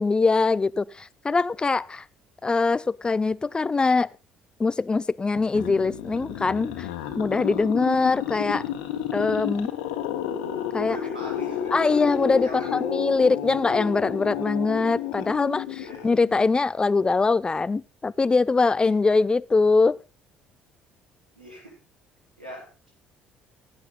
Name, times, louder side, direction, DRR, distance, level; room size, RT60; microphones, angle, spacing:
voice 1, 0.0-2.0 2.4-4.1 4.6-6.9 7.2-8.6 9.1-9.7 10.7-11.0 11.7-20.0, left 4 dB, 20° left, 0.5 m, -22 dB
sound 1, 5.4-16.5, left 9 dB, 65° left, 1.5 m, -31 dB
voice 2, 10.8-12.0 12.4-12.8 15.8-16.1 21.4-21.8 22.4-22.7, left 1 dB, 85° right, 4.3 m, -40 dB
16.0 x 7.9 x 4.0 m
figure-of-eight pair, 50°, 5 cm